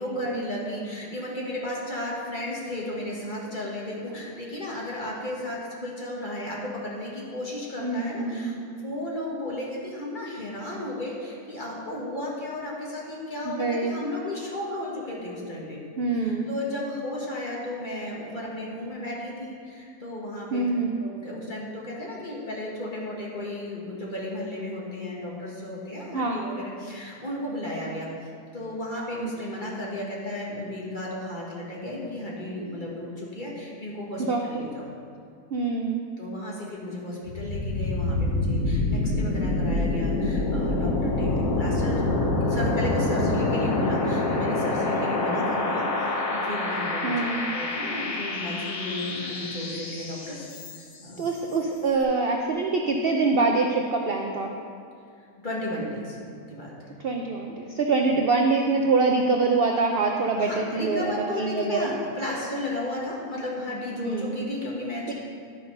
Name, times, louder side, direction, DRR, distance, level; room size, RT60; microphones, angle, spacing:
voice 1, 0.0-15.8 16.1-20.7 21.0-34.8 36.2-51.2 55.4-56.2 56.5-56.9 58.1-58.2 60.4-65.1, left 1 dB, 30° left, -4 dB, 1.8 m, -34 dB
voice 2, 7.8-8.6 13.4-13.9 16.0-16.4 20.5-20.9 26.1-26.4 34.2-34.4 35.5-36.1 47.0-47.5 51.2-54.5 57.0-61.9 64.0-64.4, right 3 dB, 55° right, 2 dB, 0.6 m, -25 dB
sound 1, 37.3-51.1, left 2 dB, 60° left, 1.3 m, -26 dB
11.0 x 5.7 x 5.5 m, 2.4 s
omnidirectional pair, 1.7 m